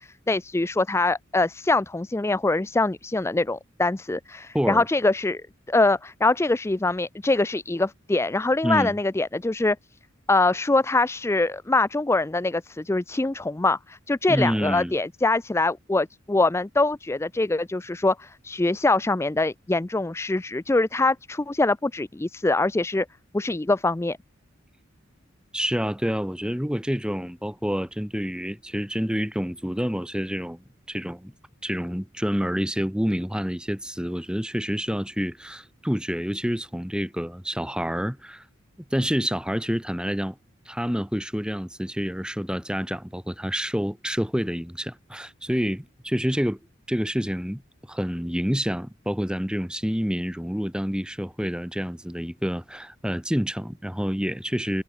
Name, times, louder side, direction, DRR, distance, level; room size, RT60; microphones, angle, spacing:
voice 1, 0.0-5.4 5.7-9.8 10.3-23.1 23.3-24.2, left 2 dB, 15° left, 0.4 m, -24 dB
voice 2, 4.5-4.9 8.6-9.0 14.3-14.9 25.5-31.3 31.6-38.4 38.9-40.4 40.7-46.6 46.9-47.6 47.9-54.8, equal, 5° right, 2.2 m, -28 dB
head